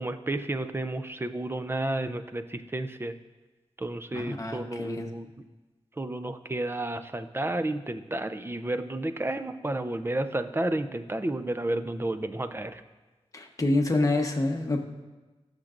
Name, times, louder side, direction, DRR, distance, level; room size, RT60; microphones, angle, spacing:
voice 1, 0.0-3.2 3.8-5.3 6.0-12.8, right 1 dB, 20° right, 9 dB, 0.5 m, -31 dB
voice 2, 4.1-5.1 13.3-14.8, left 2 dB, 30° left, 2 dB, 1.0 m, -27 dB
17.5 x 6.6 x 2.5 m, 1.2 s
wide cardioid pair, 90°, 11 cm